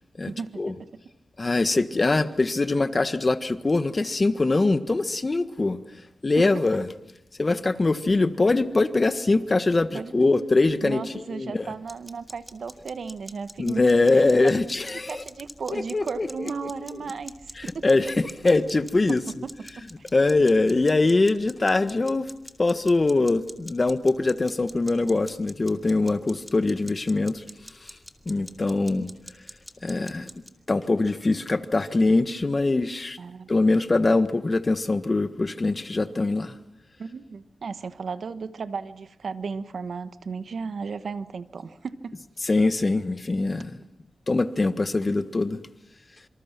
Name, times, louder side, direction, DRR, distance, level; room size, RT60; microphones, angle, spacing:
voice 1, 0.3-0.8 6.4-6.7 9.9-10.1 10.8-13.8 14.1-14.5 15.1-17.3 17.6-17.9 19.1-19.8 33.2-33.5 37.0-42.2, right 5 dB, 70° right, 12 dB, 1.3 m, -35 dB
voice 2, 1.4-5.8 6.2-6.8 7.4-11.7 13.6-15.2 15.7-16.7 17.6-19.2 20.1-22.3 22.6-27.4 28.3-29.1 29.8-30.3 30.7-33.2 33.5-36.5 42.4-43.8 44.3-45.6, left 3 dB, 35° left, 11 dB, 1.4 m, -23 dB
sound 1, 11.9-30.5, equal, ahead, 2.6 m, -46 dB
27.0 x 26.0 x 6.1 m, 0.81 s
wide cardioid pair, 90°, 0 cm